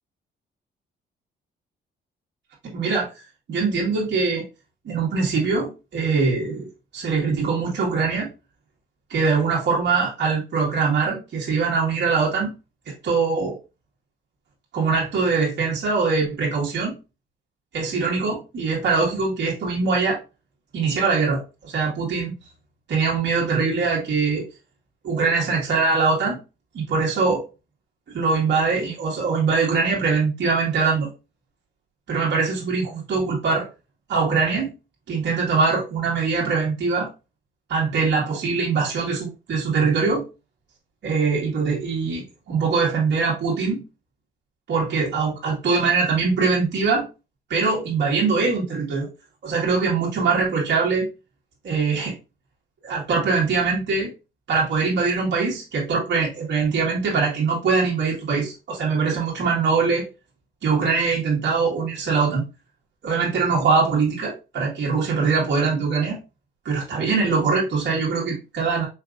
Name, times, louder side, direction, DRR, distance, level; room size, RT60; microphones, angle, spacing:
voice 1, 2.6-3.1 3.5-4.5 4.8-8.3 9.1-12.5 12.9-13.5 14.7-17.0 17.7-20.2 20.7-22.3 22.9-24.4 25.0-26.4 26.7-27.4 28.1-31.1 32.1-33.7 34.1-34.7 35.1-37.1 37.7-40.2 41.0-43.8 44.7-47.1 47.5-49.1 49.4-51.1 51.6-52.1 52.8-54.1 54.5-60.0 60.6-62.4 63.0-66.2 66.7-68.8, right 4 dB, 60° right, -5 dB, 1.9 m, -22 dB
4.8 x 3.3 x 2.5 m, 0.29 s
cardioid pair, 90°, 20 cm